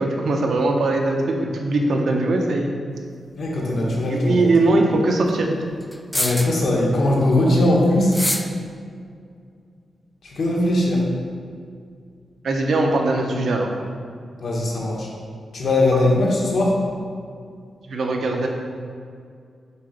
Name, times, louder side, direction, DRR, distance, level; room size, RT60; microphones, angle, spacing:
voice 1, 0.0-2.7 4.1-5.6 12.4-13.7 17.9-18.5, right 2 dB, 65° right, 2 dB, 0.9 m, -20 dB
voice 2, 3.4-4.5 6.1-8.2 10.2-11.1 14.4-15.1 15.5-16.8, left 1 dB, 60° left, -3 dB, 1.5 m, -20 dB
sound 1, 3.9-4.0 5.9-6.7 8.0-8.6, left 1 dB, 10° left, 0.4 m, -25 dB
7.3 x 3.9 x 5.2 m, 2.2 s
wide cardioid pair, 130°, 0 cm